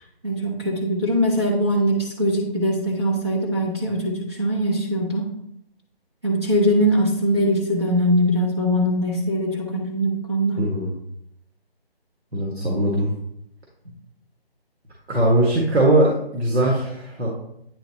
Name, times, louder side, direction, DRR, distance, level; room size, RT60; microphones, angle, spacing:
voice 1, 0.2-5.3 6.2-10.6, equal, 25° right, -3 dB, 0.8 m, -22 dB
voice 2, 10.6-10.9 12.3-13.1 15.1-17.3, right 1 dB, 85° right, -2 dB, 1.8 m, -20 dB
9.1 x 3.9 x 3.0 m, 0.77 s
figure-of-eight pair, 170°, 31 cm